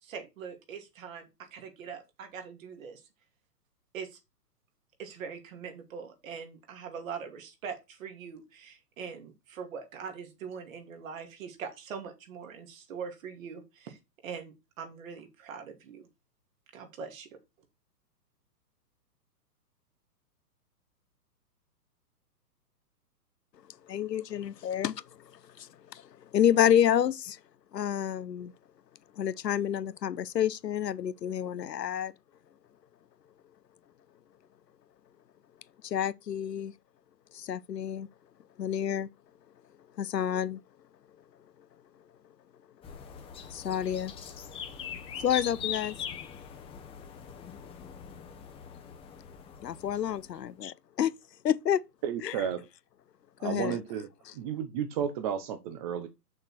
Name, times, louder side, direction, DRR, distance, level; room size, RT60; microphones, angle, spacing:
voice 1, 0.0-3.0 3.9-4.2 5.0-16.1 16.7-17.4, right 6 dB, 55° right, 2.7 m, -42 dB
voice 2, 23.9-25.0 25.6-27.4 27.7-28.5 29.2-32.1 35.8-36.7 37.3-38.1 38.6-39.1 40.0-40.6 43.5-44.1 45.2-45.9 49.6-51.1 51.4-51.8 52.2-52.3 53.4-53.8, left 10 dB, 80° left, 0.8 m, -29 dB
sound 1, 42.8-50.5, left 8 dB, 10° left, 0.9 m, -41 dB
voice 3, 52.0-52.7 53.4-54.1 54.3-56.1, right 8 dB, 20° right, 0.6 m, -32 dB
6.7 x 6.4 x 4.3 m
hypercardioid pair, 130°, 49 cm